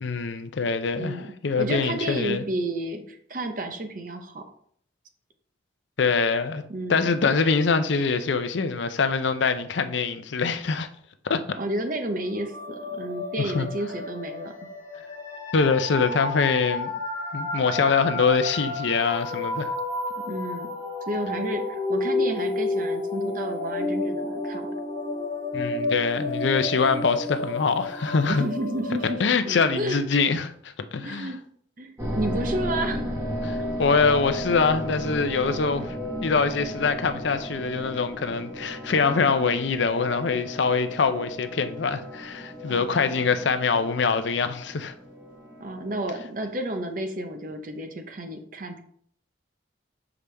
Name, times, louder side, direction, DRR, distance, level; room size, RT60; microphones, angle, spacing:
voice 1, 0.0-2.4 6.0-6.6 6.9-10.9 11.2-11.4 13.4-13.7 15.5-16.9 17.3-19.7 25.5-28.5 29.2-31.3 33.4-36.0 36.2-44.9, left 5 dB, 70° left, 0.5 m, -24 dB
voice 2, 1.0-1.3 1.6-4.4 6.7-7.1 11.6-14.5 20.2-20.7 21.1-24.7 28.3-30.0 31.0-31.5 31.8-33.2 33.6-33.7 42.6-43.3 45.6-48.8, right 1 dB, 45° right, 0.8 m, -31 dB
sound 1, 12.3-29.1, left 2 dB, 25° left, 2.2 m, -31 dB
sound 2, 32.0-46.0, equal, 15° right, 1.2 m, -34 dB
6.8 x 4.9 x 3.3 m
head